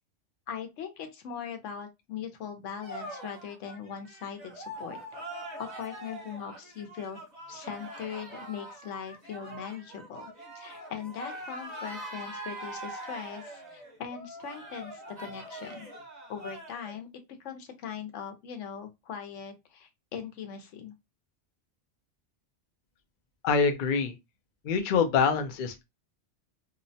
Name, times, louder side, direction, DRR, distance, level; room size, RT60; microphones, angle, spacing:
voice 1, 0.5-5.0 5.6-7.2 7.5-15.9 16.3-17.1 17.4-20.9, left 7 dB, 90° left, 1.0 m, -40 dB
sound 1, 2.8-16.9, right 1 dB, 35° right, 1.0 m, -43 dB
voice 2, 23.4-24.1 24.6-25.8, left 5 dB, 55° left, 0.6 m, -25 dB
2.8 x 2.0 x 2.7 m
omnidirectional pair, 1.2 m